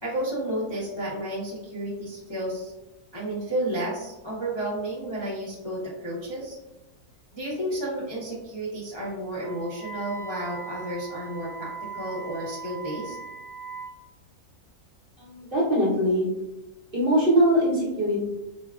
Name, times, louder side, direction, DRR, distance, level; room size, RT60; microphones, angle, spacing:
voice 1, 0.0-2.7 3.1-6.6 7.3-13.2, right 1 dB, 30° left, -8 dB, 0.5 m, -32 dB
Wind instrument woodwind instrument, 9.4-14.0, right 5 dB, 60° left, 2.0 m, -39 dB
voice 2, 15.2-16.3 16.9-18.2, equal, 40° right, -6 dB, 0.9 m, -22 dB
5.3 x 2.2 x 2.4 m, 0.98 s
omnidirectional pair, 1.8 m